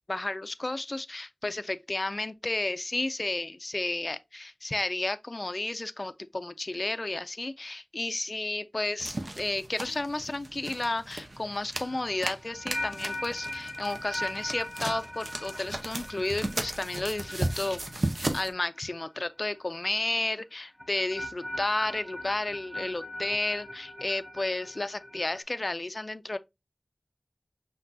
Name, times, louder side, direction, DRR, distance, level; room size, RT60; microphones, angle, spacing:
voice 1, 0.1-17.8 18.1-26.4, left 2 dB, 55° left, 0.3 m, -32 dB
sound 1, 9.0-18.5, right 2 dB, 60° right, 0.7 m, -36 dB
sound 2, 11.8-18.9 19.1-19.6 20.8-25.4, left 1 dB, 5° left, 1.2 m, -40 dB
5.9 x 2.7 x 2.7 m
wide cardioid pair, 45°, 0 cm